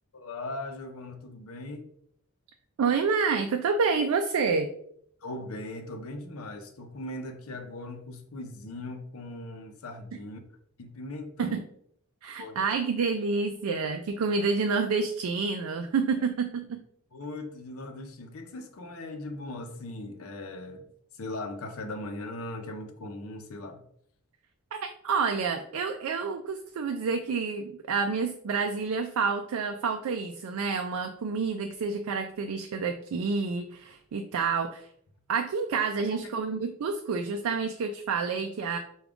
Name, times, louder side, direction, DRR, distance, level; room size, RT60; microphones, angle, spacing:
voice 1, 0.1-1.9 5.2-10.4 10.8-11.6 12.4-12.6 17.1-20.9 21.1-23.9 36.1-36.2, left 2 dB, 75° left, 5 dB, 0.6 m, -39 dB
voice 2, 2.8-4.7 11.4-11.6 12.2-16.8 24.7-34.9 35.3-38.8, right 5 dB, 90° right, 6 dB, 0.4 m, -28 dB
4.9 x 2.3 x 3.5 m, 0.67 s
head